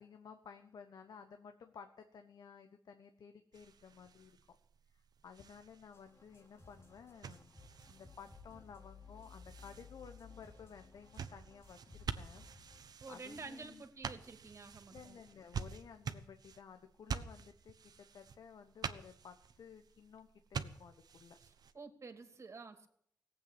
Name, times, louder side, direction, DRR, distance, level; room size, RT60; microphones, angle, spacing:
voice 1, 0.0-4.6 4.9-7.5 7.9-12.5 13.1-13.8 14.9-21.4, left 6 dB, 75° left, 7 dB, 1.3 m, -55 dB
sound 1, 3.5-21.7, right 6 dB, 70° right, 1.1 m, -48 dB
sound 2, 5.9-12.9, left 4 dB, 40° left, 3.0 m, -58 dB
voice 2, 13.0-15.2 21.4-22.9, right 4 dB, 45° right, 7 dB, 2.6 m, -50 dB
18.5 x 8.5 x 9.1 m, 0.68 s
cardioid pair, 95°, 7 cm